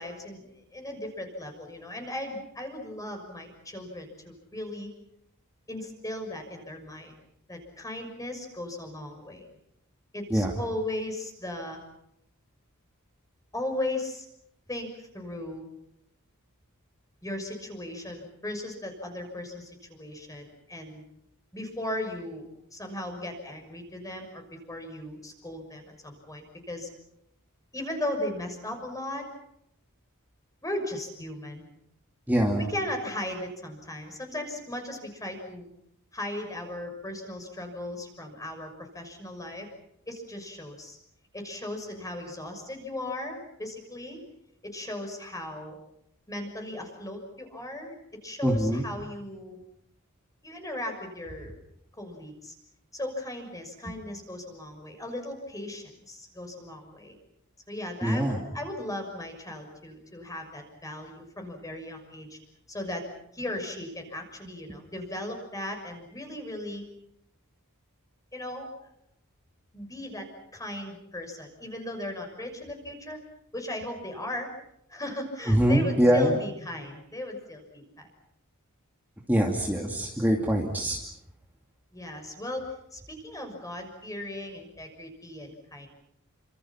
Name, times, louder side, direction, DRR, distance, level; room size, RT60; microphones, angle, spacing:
voice 1, 0.0-4.9 5.7-7.1 7.5-9.5 10.1-11.8 13.5-14.3 14.7-15.6 17.2-21.0 21.5-26.9 27.7-29.3 30.6-31.6 32.6-35.7 36.1-39.7 40.1-41.0 41.3-44.2 44.6-45.8 46.3-47.9 48.2-49.6 50.4-51.5 52.0-52.5 52.9-57.1 57.7-62.4 62.7-63.0 63.3-66.8 68.3-68.7 69.7-73.2 73.5-74.5 74.9-78.1 81.9-85.9, left 1 dB, 15° left, 4 dB, 6.5 m, -37 dB
voice 2, 32.3-32.7 48.4-48.9 58.0-58.4 75.5-76.4 79.3-81.0, equal, 10° right, 0 dB, 2.6 m, -23 dB
30.0 x 26.0 x 5.9 m, 0.76 s
head